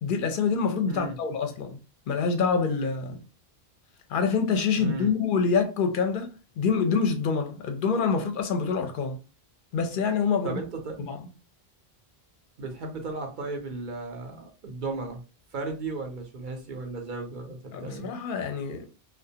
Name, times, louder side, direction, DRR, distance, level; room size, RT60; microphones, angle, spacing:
voice 1, 0.0-1.8 2.1-3.2 4.1-9.2 9.7-10.6 11.0-11.2 17.7-18.9, left 5 dB, 65° left, 0.7 m, -26 dB
voice 2, 4.8-5.1 10.4-11.0 12.6-15.2 15.5-18.1, right 3 dB, 55° right, 0.7 m, -35 dB
2.4 x 2.2 x 2.7 m
omnidirectional pair, 1.0 m